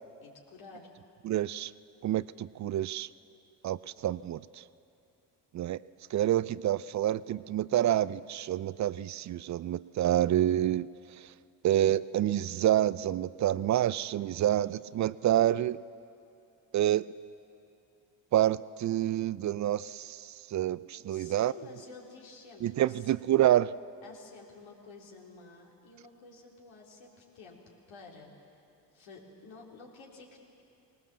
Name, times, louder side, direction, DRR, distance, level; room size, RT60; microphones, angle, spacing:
voice 1, 0.2-0.9 21.1-23.1 24.0-27.6 27.9-28.3 28.9-30.4, left 4 dB, 70° left, -1 dB, 3.6 m, -51 dB
voice 2, 1.2-1.7 2.0-3.1 3.6-4.6 5.5-5.8 6.1-10.9 11.2-11.3 11.6-15.8 16.7-17.1 18.3-21.5 22.6-23.7, right 12 dB, 40° right, 19 dB, 0.4 m, -28 dB
20.0 x 18.5 x 7.4 m, 2.6 s
hypercardioid pair, 65°, 48 cm